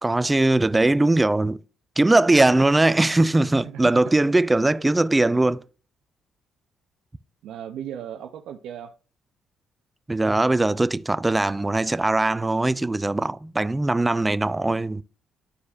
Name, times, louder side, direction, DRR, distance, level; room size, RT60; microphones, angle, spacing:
voice 1, 0.0-1.6 2.0-5.6 10.1-15.0, right 2 dB, 15° right, 0.4 m, -20 dB
voice 2, 3.6-4.1 7.4-8.9, right 9 dB, 85° right, 0.5 m, -36 dB
12.5 x 4.7 x 2.4 m
cardioid pair, 90°, 0 cm